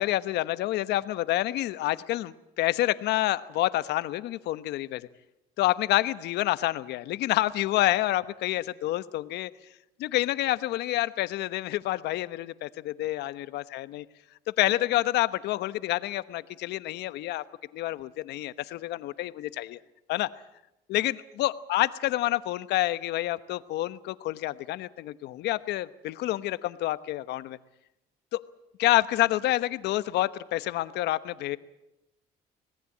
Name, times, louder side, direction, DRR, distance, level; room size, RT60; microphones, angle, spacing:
voice 1, 0.0-5.1 5.6-9.5 10.0-14.0 14.6-17.4 17.7-19.8 20.1-20.3 20.9-27.6 28.3-28.4 28.8-31.6, left 16 dB, 80° left, 14 dB, 1.1 m, -28 dB
25.5 x 18.5 x 8.6 m, 0.88 s
cardioid pair, 110°, 17 cm